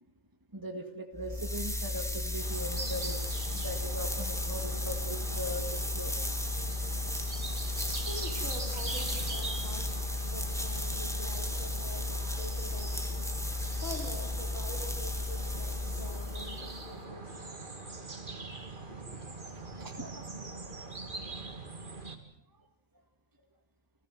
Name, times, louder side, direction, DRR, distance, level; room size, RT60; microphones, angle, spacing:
voice 1, 0.5-3.2 3.5-6.2 19.4-20.3, equal, 15° right, 5 dB, 1.9 m, -40 dB
sound 1, 1.1-16.9, left 2 dB, ahead, 2.1 m, -34 dB
sound 2, 2.4-22.2, right 3 dB, 40° right, 2.4 m, -43 dB
voice 2, 8.0-17.6 18.9-19.3, left 1 dB, 75° left, 2 dB, 4.6 m, -46 dB
29.5 x 15.5 x 7.7 m, 0.75 s
omnidirectional pair, 1.4 m